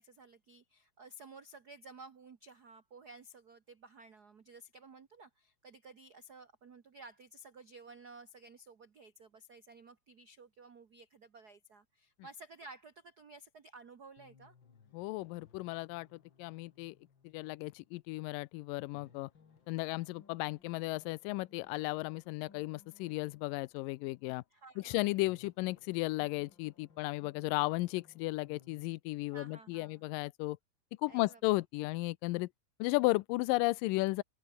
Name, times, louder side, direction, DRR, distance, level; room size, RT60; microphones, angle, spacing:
voice 1, 0.0-14.5 24.5-25.1 29.3-30.1 31.1-31.4, right 3 dB, 60° right, 1.0 m, -54 dB
sound 1, 13.8-13.9 14.2-18.4 18.8-24.9 25.2-28.9, left 6 dB, 35° left, 2.6 m, -65 dB
voice 2, 14.9-17.0 17.2-19.3 19.7-24.4 24.8-30.6 31.0-32.5 32.8-34.2, left 21 dB, 80° left, 2.2 m, -34 dB
omnidirectional pair, 4.0 m